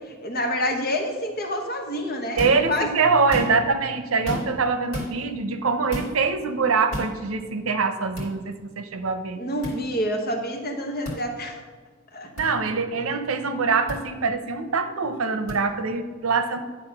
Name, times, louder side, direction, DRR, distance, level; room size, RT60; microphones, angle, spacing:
voice 1, 0.2-2.9 9.3-11.6 12.1-12.3, left 1 dB, 50° left, 3 dB, 1.1 m, -28 dB
sound 1, 2.4-2.7 3.2-3.7 4.2-4.6 4.9-5.1 5.9-6.1 6.9-7.1 8.1-8.3 9.6-9.8 11.0-11.2 12.4-12.5 13.9-14.0 15.5-15.6, equal, 75° left, 2.7 m, -31 dB
voice 2, 2.4-9.4 12.4-16.6, right 4 dB, 85° right, 9 dB, 0.7 m, -24 dB
10.0 x 3.7 x 5.8 m, 1.4 s
head